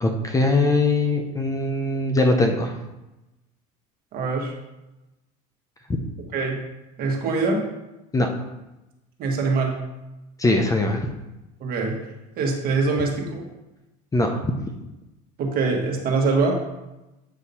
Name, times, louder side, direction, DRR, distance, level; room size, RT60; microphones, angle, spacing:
voice 1, 0.0-2.8 8.1-8.3 10.4-11.1 14.1-14.5, left 2 dB, 15° left, 4 dB, 0.6 m, -21 dB
voice 2, 4.1-4.5 6.3-6.6 7.0-7.7 9.2-9.8 11.6-12.0 12.4-13.5 15.4-16.6, right 3 dB, 50° right, 1 dB, 1.5 m, -23 dB
8.2 x 2.8 x 5.4 m, 0.99 s
supercardioid pair, 115°, 19 cm